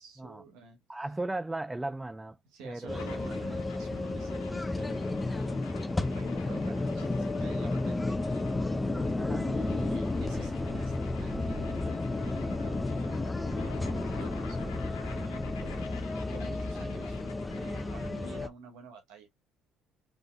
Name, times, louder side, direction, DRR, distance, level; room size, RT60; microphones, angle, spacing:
voice 1, 0.0-0.8 2.4-5.2 5.9-8.6 9.3-13.2 13.5-19.3, right 4 dB, 75° right, 1.2 m, -49 dB
voice 2, 0.9-2.4 2.6-3.3 9.1-9.5, right 2 dB, 15° right, 0.3 m, -36 dB
sound 1, 2.9-18.5, left 2 dB, 20° left, 0.6 m, -32 dB
sound 2, 3.0-18.4, left 6 dB, 85° left, 1.1 m, -46 dB
5.3 x 3.8 x 2.3 m
hypercardioid pair, 60°, 0 cm